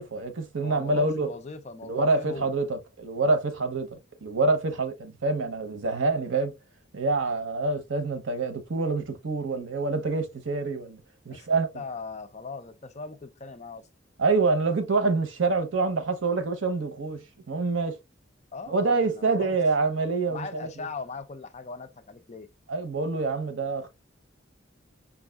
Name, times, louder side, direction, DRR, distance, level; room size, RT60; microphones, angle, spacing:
voice 1, 0.0-1.3 1.8-6.5 6.9-11.0 11.3-11.7 14.2-18.0 18.7-20.7 22.7-23.9, right 3 dB, 85° right, 0.8 m, -26 dB
voice 2, 0.6-2.6 11.3-13.9 18.5-19.6 20.3-22.5, left 4 dB, 35° left, 0.5 m, -40 dB
5.4 x 2.4 x 2.3 m
head